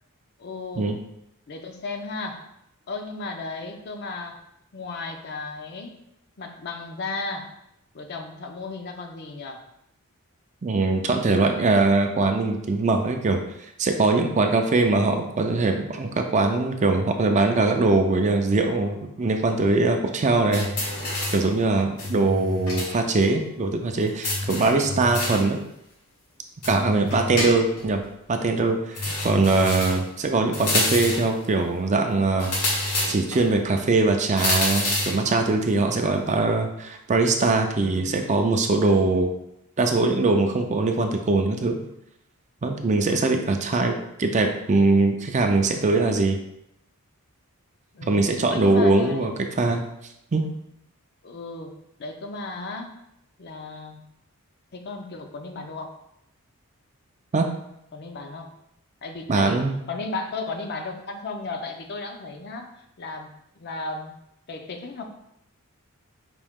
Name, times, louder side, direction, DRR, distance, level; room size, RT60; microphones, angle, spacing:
voice 1, 0.4-1.0 1.5-2.5 2.9-4.4 4.7-6.0 6.4-7.5 7.9-9.7 27.0-27.5 29.1-29.2 37.8-38.1 47.9-49.4 51.2-53.0 53.4-54.0 54.7-55.9 57.9-58.5 59.0-59.6 59.9-63.3 63.6-64.1 64.5-65.0, left 3 dB, 45° left, 5 dB, 0.5 m, -35 dB
voice 2, 10.6-20.7 21.3-25.6 26.6-28.0 28.3-32.5 33.1-39.3 39.8-41.8 42.6-46.4 48.0-49.3 49.6-49.8 50.3-50.5 57.3-57.5 59.3-59.8, right 3 dB, 35° right, 4 dB, 0.4 m, -22 dB
sound 1, 20.5-21.5 22.0-23.0 23.2-23.3 24.2-25.5 26.6-27.9 29.0-30.1 30.5-31.3 32.4-33.4 34.4-35.2, left 1 dB, 85° left, 1.4 m, -27 dB
5.1 x 2.8 x 3.5 m, 0.80 s
head